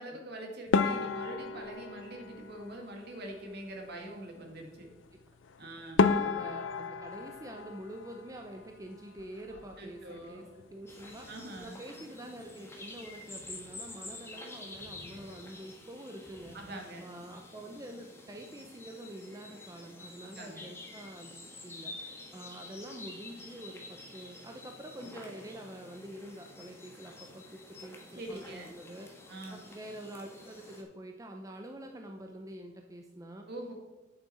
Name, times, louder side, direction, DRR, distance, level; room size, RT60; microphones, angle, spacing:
voice 1, 0.0-4.9 5.6-6.1 9.5-10.4 11.3-11.8 16.5-17.1 20.3-20.7 28.2-28.7 29.3-29.7 33.5-33.7, right 1 dB, 60° right, 2 dB, 2.0 m, -44 dB
sound 1, 0.7-3.2 5.4-5.5 6.0-8.7 9.0-9.8 10.1-10.3 10.6-10.7 11.3-11.6, left 4 dB, 80° left, 0.5 m, -31 dB
voice 2, 6.2-16.6 17.0-21.4 21.6-29.1 29.5-33.5, right 1 dB, 20° right, 3 dB, 0.6 m, -46 dB
sound 2, 10.9-30.8, left 2 dB, 15° left, 1.4 m, -49 dB
8.7 x 7.4 x 4.3 m, 1.2 s
head